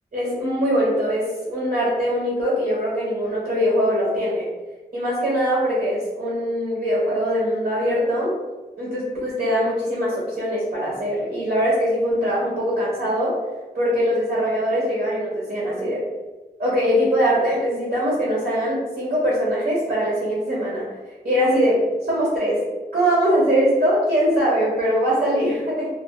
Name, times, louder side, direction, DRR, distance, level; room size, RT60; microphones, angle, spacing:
voice 1, 0.1-4.5 4.9-8.3 8.8-13.3 13.7-16.0 16.6-20.8 21.2-21.8 22.1-22.6 22.9-25.9, equal, 70° right, -7 dB, 1.1 m, -22 dB
2.5 x 2.2 x 2.3 m, 1.2 s
cardioid pair, 40°, 17 cm